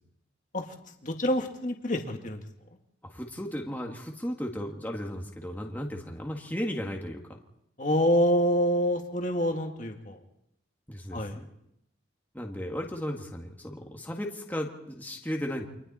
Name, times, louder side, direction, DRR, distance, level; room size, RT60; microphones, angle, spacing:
voice 1, 1.0-2.4 7.8-10.2 11.1-11.4, equal, 40° left, 3 dB, 2.1 m, -26 dB
voice 2, 3.0-7.4 10.9-11.2 12.3-15.7, equal, 10° left, 1 dB, 1.8 m, -35 dB
29.5 x 25.0 x 4.3 m, 0.78 s
head